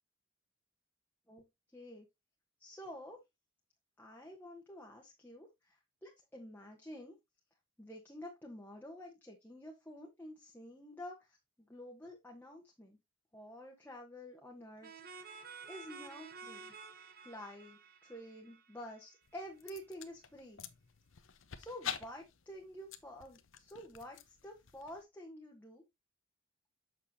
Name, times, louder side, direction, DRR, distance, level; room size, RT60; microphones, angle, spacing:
voice 1, 1.7-2.0 2.6-3.2 4.0-5.8 6.0-7.1 7.8-11.4 11.7-13.0 13.3-14.9 15.7-16.7 17.2-20.6 21.6-25.8, equal, 10° left, -1 dB, 1.1 m, -49 dB
sound 1, 14.8-19.4, right 5 dB, 50° right, 1.0 m, -52 dB
sound 2, 19.2-25.0, left 8 dB, 75° left, 0.8 m, -48 dB
7.4 x 6.5 x 2.8 m, 0.20 s
head